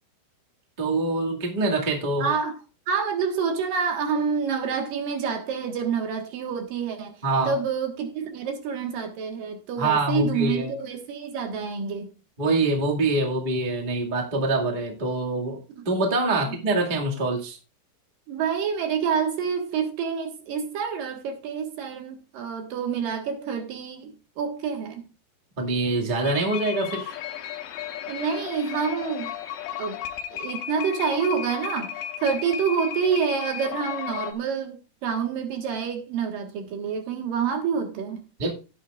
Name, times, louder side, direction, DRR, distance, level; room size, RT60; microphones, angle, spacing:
voice 1, 0.8-2.3 7.2-7.5 9.8-10.7 12.4-15.6 15.8-17.6 25.6-27.2 38.4-38.5, right 2 dB, 35° right, 0.7 m, -25 dB
voice 2, 2.2-2.6 2.9-7.1 7.5-12.1 15.8-15.9 16.2-16.5 18.3-25.0 28.1-29.3 29.8-30.0 30.3-38.2, right 6 dB, 60° right, 2.8 m, -28 dB
sound 1, 26.2-34.3, left 10 dB, 85° left, 3.2 m, -34 dB
16.5 x 8.6 x 2.5 m
omnidirectional pair, 4.9 m